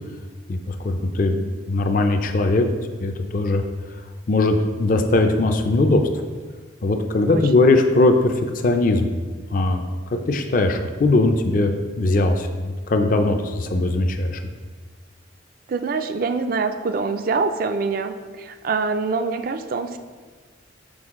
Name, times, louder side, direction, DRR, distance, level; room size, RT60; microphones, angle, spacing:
voice 1, 0.5-2.7 3.0-3.6 4.3-6.0 6.8-8.3 8.6-9.1 9.5-9.8 10.3-14.4, left 2 dB, 45° left, 5 dB, 0.4 m, -20 dB
voice 2, 7.3-7.7 15.7-20.0, right 4 dB, 45° right, 9 dB, 0.3 m, -25 dB
6.2 x 4.5 x 3.6 m, 1.4 s
head